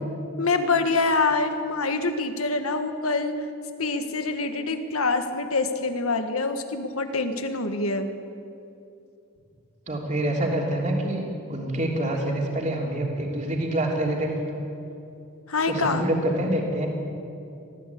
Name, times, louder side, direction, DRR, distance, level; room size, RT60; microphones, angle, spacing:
voice 1, 0.4-3.3 3.8-8.1 15.5-16.0, left 3 dB, 80° left, 7 dB, 1.5 m, -25 dB
voice 2, 9.9-11.2 11.5-14.6 15.6-16.9, right 1 dB, 35° right, -1 dB, 3.2 m, -26 dB
20.0 x 15.0 x 8.6 m, 2.7 s
head